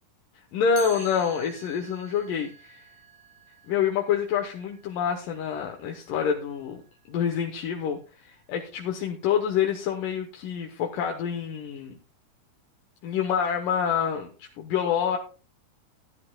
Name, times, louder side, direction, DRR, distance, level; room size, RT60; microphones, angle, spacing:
voice 1, 0.5-2.8 3.7-6.8 7.1-12.0 13.0-15.2, left 7 dB, 80° left, 2 dB, 2.8 m, -27 dB
Chime, 0.8-6.6, right 7 dB, 85° right, 3.9 m, -49 dB
16.0 x 11.0 x 2.3 m, 0.34 s
omnidirectional pair, 3.7 m